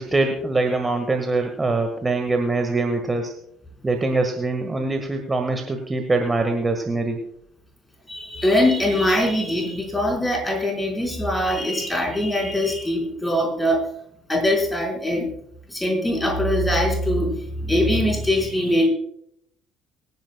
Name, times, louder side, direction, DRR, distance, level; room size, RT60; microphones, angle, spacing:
voice 1, 0.0-3.3 3.8-7.2, right 3 dB, 20° right, 5 dB, 1.7 m, -23 dB
voice 2, 8.1-13.9 14.3-15.3 15.7-18.9, left 1 dB, 10° left, 1 dB, 4.7 m, -22 dB
24.5 x 10.5 x 2.3 m, 0.72 s
figure-of-eight pair, 50°, 0 cm